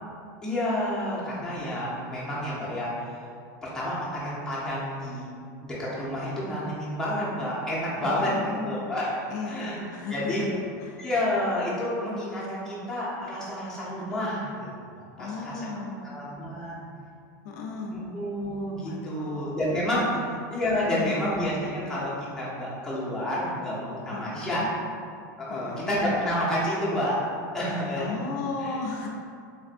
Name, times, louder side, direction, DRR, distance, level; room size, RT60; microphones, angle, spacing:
voice 1, 0.4-3.2 3.6-5.3 5.6-10.4 11.0-15.6 16.0-16.8 17.9-20.2 20.5-24.6 25.4-27.2 27.5-28.2 28.6-28.7, left 1 dB, 5° left, -8 dB, 0.7 m, -29 dB
voice 2, 8.0-9.0 9.3-11.0 14.1-14.2 15.2-16.2 17.4-18.1 18.8-19.6 20.1-20.2 20.9-21.3 24.1-24.7 25.5-26.0 28.0-29.1, left 3 dB, 70° left, -1 dB, 0.4 m, -36 dB
3.3 x 2.5 x 2.5 m, 2.3 s
supercardioid pair, 145°, 10 cm